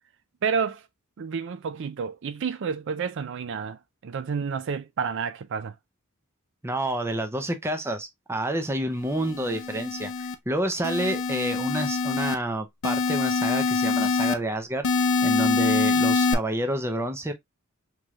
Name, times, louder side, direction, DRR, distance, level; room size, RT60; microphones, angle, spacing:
voice 1, 0.4-0.8 1.2-5.7, right 6 dB, 60° right, 0.4 m, -30 dB
voice 2, 6.6-17.3, right 1 dB, 10° right, 0.6 m, -29 dB
sound 1, 9.2-10.3 10.8-12.4 12.8-14.3 14.8-16.3, left 4 dB, 70° left, 0.6 m, -24 dB
4.5 x 3.1 x 2.3 m
head